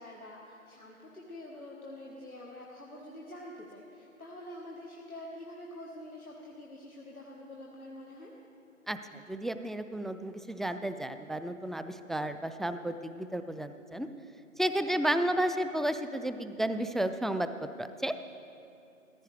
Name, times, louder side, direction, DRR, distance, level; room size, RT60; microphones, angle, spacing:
voice 1, 0.0-8.3, left 1 dB, 80° left, -2 dB, 1.4 m, -46 dB
voice 2, 8.9-14.1 14.6-18.2, right 1 dB, ahead, 10 dB, 0.3 m, -32 dB
15.0 x 14.0 x 3.3 m, 2.7 s
figure-of-eight pair, 175°, 42 cm